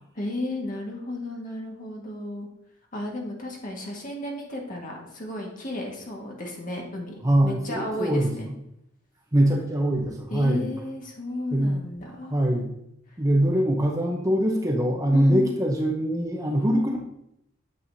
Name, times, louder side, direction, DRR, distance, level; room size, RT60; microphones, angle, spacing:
voice 1, 0.1-2.5 2.9-8.5 10.3-12.4 13.1-13.2 15.1-15.5, left 1 dB, 40° left, -1 dB, 1.7 m, -33 dB
voice 2, 7.2-8.3 9.3-10.7 11.5-11.7 12.3-12.7 13.2-17.2, right 1 dB, 15° right, 0 dB, 0.8 m, -23 dB
8.8 x 7.0 x 2.7 m, 0.78 s
head